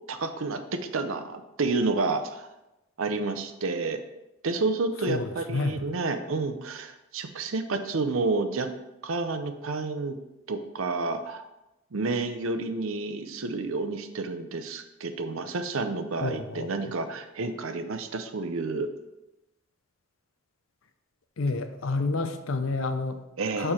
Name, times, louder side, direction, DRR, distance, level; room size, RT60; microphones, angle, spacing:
voice 1, 0.1-2.5 3.0-4.0 4.4-8.7 9.0-10.2 10.5-11.4 11.9-18.9 23.4-23.7, right 3 dB, 70° right, 8 dB, 0.6 m, -30 dB
voice 2, 5.1-5.8 16.2-16.9 21.4-23.2 23.6-23.7, left 3 dB, 70° left, 8 dB, 0.6 m, -29 dB
6.7 x 4.4 x 4.3 m, 0.95 s
head